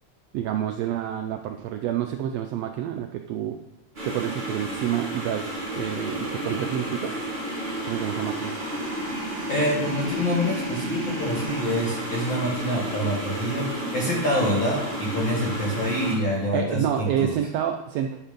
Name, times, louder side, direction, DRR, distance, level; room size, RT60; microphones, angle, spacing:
voice 1, 0.3-3.6 4.0-7.2 7.9-8.6 16.5-18.2, right 10 dB, 90° right, 5 dB, 1.4 m, -28 dB
sound 1, 3.9-16.1, right 1 dB, 20° right, 2.0 m, -31 dB
voice 2, 9.5-13.7 13.9-17.3, equal, 45° left, -3 dB, 2.2 m, -26 dB
11.5 x 4.4 x 5.2 m, 0.91 s
omnidirectional pair, 3.5 m